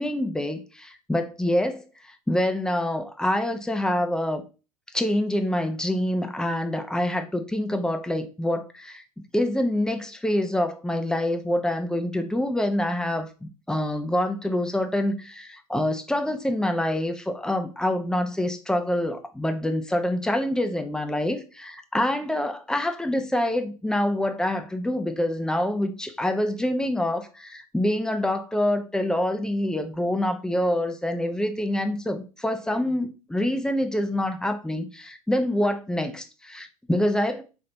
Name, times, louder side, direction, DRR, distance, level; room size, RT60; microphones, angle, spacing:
voice 1, 0.0-4.4 4.9-9.0 9.3-37.4, left 1 dB, 5° left, 0.7 m, -26 dB
4.2 x 3.2 x 3.9 m
figure-of-eight pair, 80°, 19 cm